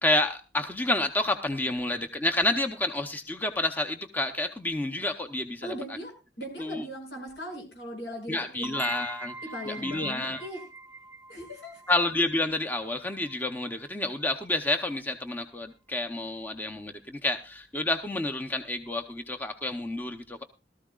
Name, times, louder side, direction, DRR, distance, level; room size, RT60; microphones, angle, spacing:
voice 1, 0.0-5.7 6.6-6.8 8.3-9.3 9.7-10.4 11.9-20.4, left 2 dB, 10° left, 5 dB, 0.7 m, -29 dB
voice 2, 5.6-8.8 9.4-10.7 11.3-11.8, equal, 75° left, 2 dB, 6.5 m, -39 dB
sound 1, 8.6-14.1, right 3 dB, 10° right, 1.6 m, -44 dB
18.5 x 13.5 x 2.4 m, 0.28 s
head